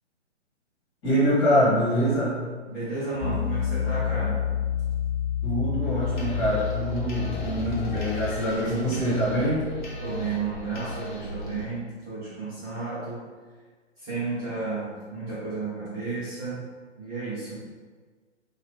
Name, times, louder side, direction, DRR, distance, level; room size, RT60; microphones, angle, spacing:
voice 1, 1.0-2.4 5.4-9.7, equal, 20° left, -10 dB, 1.4 m, -24 dB
voice 2, 2.7-4.4 10.0-13.2 14.0-16.6 17.0-17.6, right 3 dB, 15° right, -13 dB, 0.7 m, -32 dB
Piano, 3.2-8.3, left 10 dB, 80° left, 0.5 m, -29 dB
sound 1, 5.8-11.6, left 1 dB, 40° left, 0.9 m, -36 dB
4.0 x 2.4 x 3.2 m, 1.4 s
hypercardioid pair, 155°, 36 cm